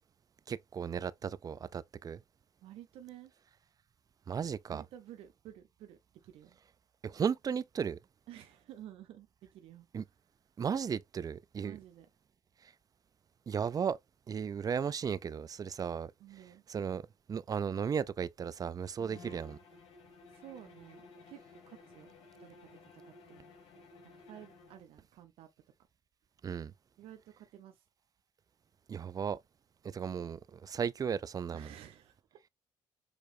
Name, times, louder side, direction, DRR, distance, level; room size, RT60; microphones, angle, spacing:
voice 1, 0.5-2.2 4.3-4.8 7.0-8.0 9.9-10.0 10.6-11.8 13.5-14.0 14.3-16.1 16.7-17.0 17.3-19.5 26.4-26.7 28.9-29.4 29.9-31.7, right 7 dB, 40° right, 0.5 m, -35 dB
voice 2, 2.6-3.3 4.7-6.6 8.3-9.9 11.6-12.1 16.2-16.6 19.0-19.4 20.3-21.4 21.7-22.1 22.4-23.4 24.0-25.5 27.0-27.8 31.5-32.5, right 11 dB, 75° right, 0.8 m, -52 dB
Bowed string instrument, 19.1-24.9, left 3 dB, 70° left, 1.6 m, -56 dB
6.7 x 3.0 x 2.6 m
supercardioid pair, 65°, 10 cm